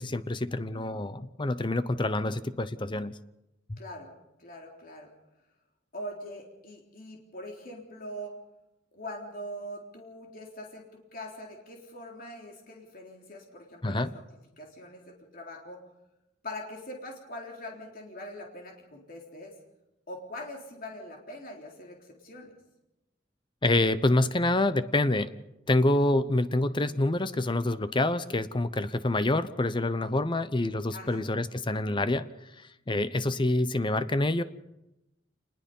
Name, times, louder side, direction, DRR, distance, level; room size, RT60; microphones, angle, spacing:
voice 1, 0.0-3.1 3.7-3.8 13.8-14.1 23.6-25.3 25.7-32.3 32.6-34.4, left 2 dB, 25° left, 13 dB, 0.8 m, -27 dB
voice 2, 3.8-4.1 4.4-5.1 5.9-8.4 8.9-14.2 14.6-15.8 16.4-19.5 20.1-22.5 30.9-31.3, equal, 50° left, 0 dB, 3.7 m, -42 dB
27.5 x 20.5 x 5.5 m, 0.92 s
head